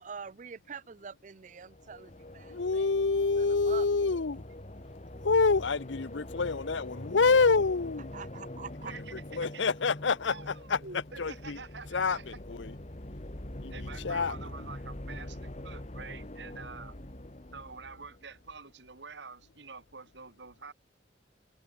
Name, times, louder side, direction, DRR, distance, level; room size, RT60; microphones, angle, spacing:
voice 1, 0.0-3.9 8.1-8.9, right 6 dB, 45° right, 0.5 m, -45 dB
sound 1, 1.5-18.6, left 1 dB, 40° left, 1.9 m, -44 dB
voice 2, 2.5-4.4 5.2-8.1 8.9-10.8 11.2-11.6 11.9-12.7 13.6-14.4, left 4 dB, 85° left, 0.8 m, -27 dB
voice 3, 8.8-9.7 10.3-12.4 13.7-17.0 17.5-20.7, right 4 dB, 70° right, 1.8 m, -47 dB
head